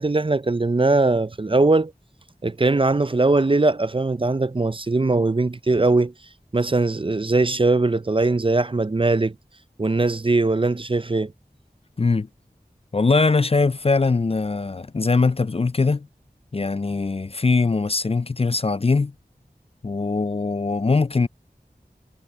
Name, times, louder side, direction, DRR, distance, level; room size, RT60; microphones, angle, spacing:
voice 1, 0.0-1.9 2.4-6.1 6.5-9.3 9.8-11.3, right 3 dB, 35° right, 0.4 m, -20 dB
voice 2, 12.0-12.3 12.9-16.1 16.5-19.1 19.8-21.3, left 3 dB, 40° left, 0.3 m, -21 dB
wide cardioid pair, 45°, 16 cm